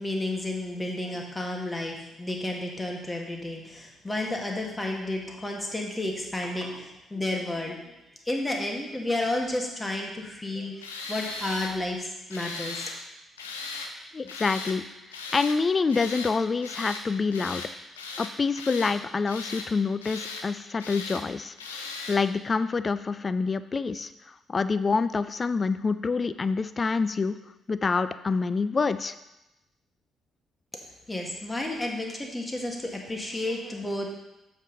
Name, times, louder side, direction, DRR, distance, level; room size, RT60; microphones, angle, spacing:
voice 1, 0.0-7.9 8.2-12.9 31.1-34.2, left 1 dB, 20° left, 1 dB, 1.7 m, -31 dB
Tools, 10.8-11.7 12.3-13.0 13.4-13.9 14.3-14.8 15.1-15.6 15.9-16.3 16.6-17.0 17.3-17.7 18.0-19.0 19.3-19.7 20.0-20.5 20.8-21.2 21.6-22.2, left 3 dB, 85° left, 0.5 m, -37 dB
voice 2, 14.1-14.8 15.3-17.6 18.2-24.1 24.5-27.4 27.7-29.1, left 4 dB, 35° left, 13 dB, 0.4 m, -27 dB
7.4 x 5.4 x 4.0 m, 0.95 s
hypercardioid pair, 45°, 0 cm